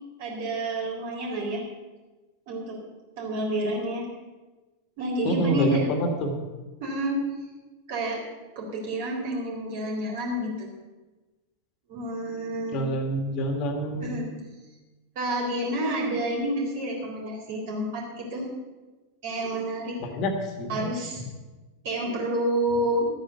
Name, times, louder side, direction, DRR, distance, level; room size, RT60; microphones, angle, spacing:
voice 1, 0.2-1.6 2.5-2.8 3.2-4.1 5.0-5.9 6.8-7.2 7.9-8.2 8.6-10.7 11.9-12.8 14.0-14.3 15.2-18.5 19.2-20.0 20.7-21.2 21.8-23.1, right 1 dB, 50° right, -1 dB, 4.2 m, -29 dB
voice 2, 5.2-6.3 12.7-14.1 20.0-20.9, equal, 40° left, 5 dB, 2.0 m, -27 dB
13.0 x 9.2 x 6.8 m, 1.2 s
figure-of-eight pair, 90°, 0 cm